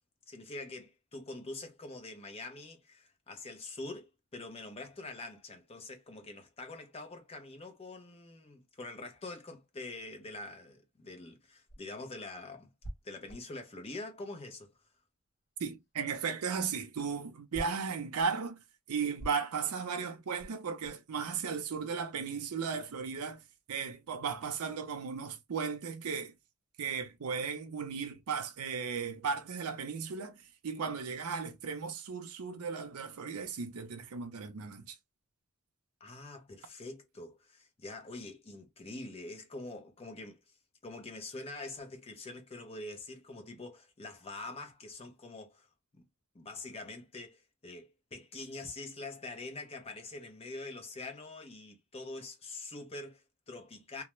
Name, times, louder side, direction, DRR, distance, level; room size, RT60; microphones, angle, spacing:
voice 1, 0.3-12.7 13.0-14.7 36.0-40.4 40.8-46.0 46.3-54.0, left 2 dB, 25° left, 0.6 m, -45 dB
sound 1, 11.4-15.1 15.4-21.1, right 1 dB, 55° left, 0.9 m, -49 dB
voice 2, 15.6-18.6 18.9-23.4 23.7-26.3 26.8-35.0, right 6 dB, 85° right, 0.5 m, -36 dB
2.3 x 2.0 x 3.0 m
head